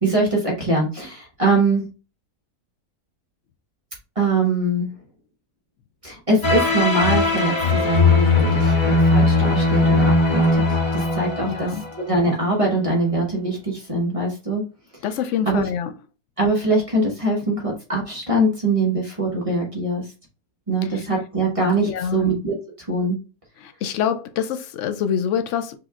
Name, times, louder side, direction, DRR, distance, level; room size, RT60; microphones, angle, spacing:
voice 1, 0.0-1.8 4.2-4.9 6.0-10.5 10.9-11.7 12.1-14.6 15.5-15.6 16.4-20.0 20.7-22.5 22.9-23.2, right 2 dB, 20° right, 1.2 m, -22 dB
sound 1, 6.4-12.2, left 3 dB, 50° left, 0.3 m, -19 dB
voice 2, 11.4-11.9 15.0-15.9 20.8-21.1 21.8-22.2 23.6-25.8, left 8 dB, 70° left, 0.7 m, -26 dB
5.8 x 3.0 x 2.4 m
omnidirectional pair, 1.7 m